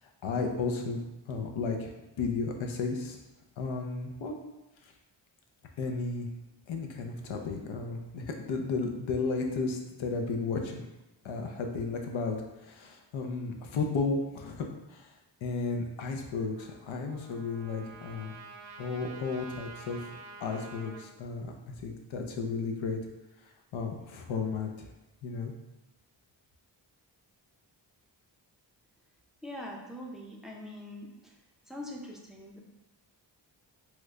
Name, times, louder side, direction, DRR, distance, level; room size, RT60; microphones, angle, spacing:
voice 1, 0.2-1.0 1.3-3.2 3.6-4.4 5.8-6.3 6.7-10.9 11.2-12.4 12.6-15.1 15.4-18.3 18.8-20.1 20.4-23.0 23.7-24.9 25.2-25.5, left 4 dB, 85° left, 3 dB, 0.6 m, -33 dB
Trumpet, 16.6-21.1, right 3 dB, 85° right, 0.5 m, -48 dB
voice 2, 29.4-31.3 31.7-32.6, left 1 dB, ahead, -2 dB, 0.4 m, -43 dB
3.1 x 2.2 x 3.5 m, 0.98 s
wide cardioid pair, 95°, 45 cm